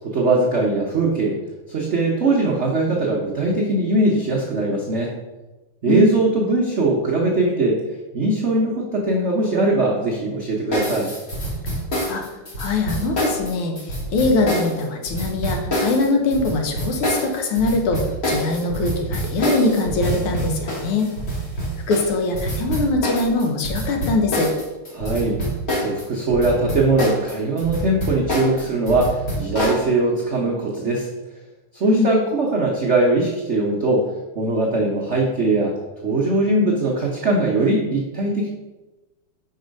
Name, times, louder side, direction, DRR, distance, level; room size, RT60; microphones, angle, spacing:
voice 1, 0.0-1.4 1.7-5.1 5.8-7.8 8.1-11.1 24.9-25.4 25.8-31.1 31.7-34.0 34.3-38.5, right 2 dB, 65° right, -3 dB, 0.7 m, -20 dB
sound 1, 10.7-26.0 26.3-29.8, equal, 35° left, 1.7 m, -26 dB
voice 2, 12.6-21.1 21.9-24.5 31.8-32.1, left 2 dB, 80° left, 3 dB, 1.9 m, -22 dB
5.3 x 4.8 x 5.1 m, 1.1 s
omnidirectional pair, 2.4 m